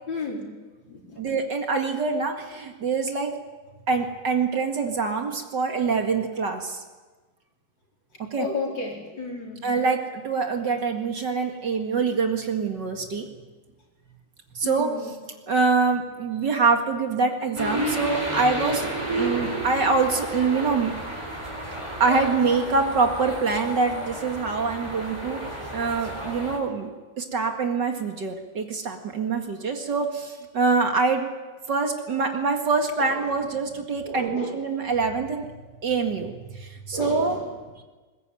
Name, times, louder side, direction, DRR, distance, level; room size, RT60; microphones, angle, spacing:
voice 1, 0.1-0.5 0.9-1.2 8.4-9.7 14.6-15.1 34.0-34.7 36.9-37.5, left 2 dB, 60° left, -1 dB, 5.1 m, -32 dB
voice 2, 1.2-3.3 3.9-6.8 8.3-8.5 9.6-13.3 14.6-14.9 15.5-21.0 22.0-25.5 25.7-31.3 31.7-35.5 35.8-37.4, right 4 dB, 55° right, 4 dB, 2.5 m, -25 dB
sound 1, 17.6-26.6, right 1 dB, 15° right, 4.4 m, -31 dB
21.0 x 20.5 x 9.1 m, 1.3 s
omnidirectional pair, 2.3 m